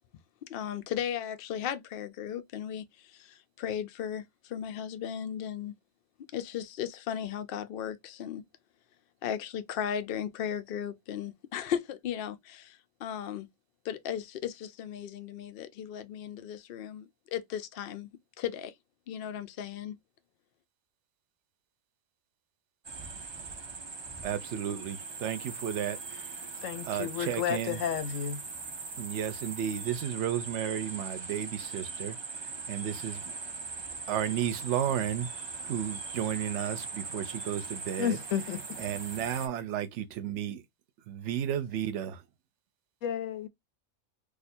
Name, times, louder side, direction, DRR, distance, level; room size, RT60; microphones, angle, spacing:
voice 1, 0.4-5.8 6.3-8.4 9.2-13.5 13.8-18.1 18.4-18.7 19.1-20.0, left 9 dB, 60° left, 0.6 m, -36 dB
sound 1, 22.8-39.5, right 4 dB, 45° right, 0.3 m, -40 dB
voice 2, 24.2-26.5 26.8-27.8 29.0-33.3 34.1-35.3 35.6-38.2 38.8-40.6 41.1-42.2, right 10 dB, 70° right, 0.9 m, -33 dB
voice 3, 26.6-28.4 38.0-38.6 43.0-43.5, left 9 dB, 80° left, 1.0 m, -32 dB
2.7 x 2.5 x 4.1 m
omnidirectional pair, 1.3 m